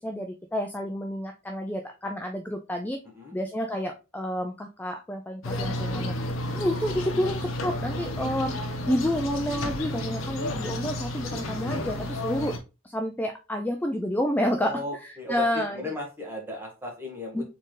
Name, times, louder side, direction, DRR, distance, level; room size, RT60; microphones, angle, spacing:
voice 1, 0.0-3.0 3.3-6.2 6.5-8.5 8.9-12.6 12.8-15.8 17.3-17.4, equal, 10° left, 3 dB, 0.4 m, -29 dB
sound 1, 5.4-12.6, left 1 dB, 80° left, 1.0 m, -31 dB
voice 2, 14.5-17.4, equal, 10° right, -1 dB, 1.8 m, -36 dB
4.3 x 3.9 x 3.1 m, 0.29 s
head